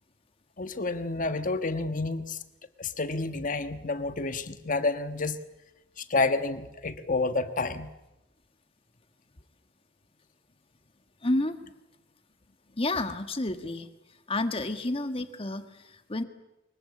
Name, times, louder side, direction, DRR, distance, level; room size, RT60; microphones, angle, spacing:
voice 1, 0.6-2.4 2.8-5.4 6.0-7.9, left 3 dB, 45° left, 9 dB, 1.4 m, -29 dB
voice 2, 11.2-11.6 12.8-13.9 14.3-16.2, left 2 dB, 30° left, 8 dB, 1.6 m, -30 dB
23.5 x 21.5 x 8.6 m, 0.93 s
head